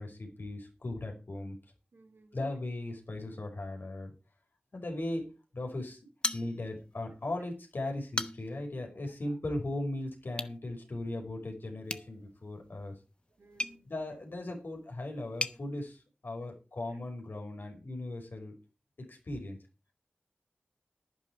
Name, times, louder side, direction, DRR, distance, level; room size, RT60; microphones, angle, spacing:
voice 1, 0.0-1.6 2.3-4.1 4.7-5.3 5.5-6.0 6.3-12.9 13.9-18.5 19.1-19.6, left 2 dB, 70° left, 3 dB, 5.4 m, -38 dB
voice 2, 1.9-2.5 9.0-9.4 13.4-13.9 16.9-17.0, right 3 dB, 75° right, 2 dB, 3.6 m, -60 dB
sound 1, 6.2-7.0 7.3-7.4 7.9-8.7 10.3-10.6 11.8-15.6, left 2 dB, 30° left, 1.0 m, -39 dB
11.0 x 11.0 x 4.8 m, 0.31 s
wide cardioid pair, 65°, 4 cm